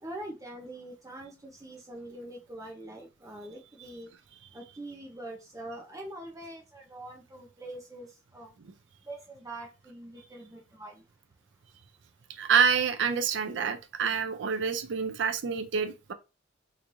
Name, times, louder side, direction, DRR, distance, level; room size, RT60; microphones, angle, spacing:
voice 1, 0.0-4.1 4.5-8.5 9.0-11.0, right 1 dB, 15° right, 0.7 m, -44 dB
voice 2, 12.4-16.1, right 6 dB, 75° right, 0.4 m, -27 dB
3.4 x 3.1 x 2.6 m
head